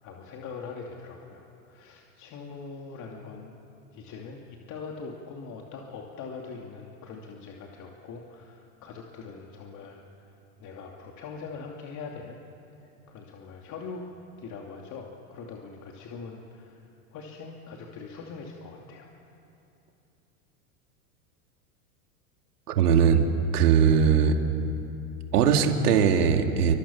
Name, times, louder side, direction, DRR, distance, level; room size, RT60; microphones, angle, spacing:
voice 1, 0.0-3.5 3.9-10.0 10.6-12.4 12.8-14.1 14.4-16.8 17.1-19.1, left 4 dB, 40° left, 0 dB, 2.8 m, -42 dB
voice 2, 22.7-23.3 23.5-24.4 25.3-26.8, right 7 dB, 85° right, 4 dB, 2.5 m, -20 dB
29.5 x 25.0 x 7.2 m, 2.8 s
hypercardioid pair, 115°, 45 cm